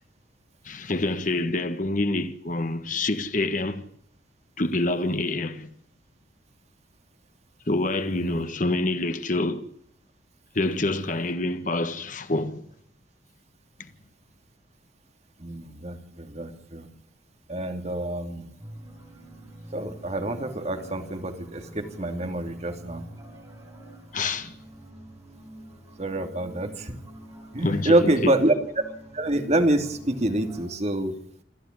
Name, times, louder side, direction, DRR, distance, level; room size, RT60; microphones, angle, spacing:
voice 1, 0.6-3.8 4.6-5.7 7.7-9.7 10.5-12.6 24.1-24.5 27.6-28.5, left 2 dB, 45° left, 1.6 m, -27 dB
voice 2, 8.1-8.4 15.4-16.9 17.5-18.4 19.7-23.0 26.0-26.9 27.5-28.5 29.1-31.1, right 1 dB, 35° right, 2.8 m, -26 dB
sound 1, 18.6-30.7, right 1 dB, 20° right, 7.6 m, -46 dB
28.0 x 12.0 x 9.7 m
head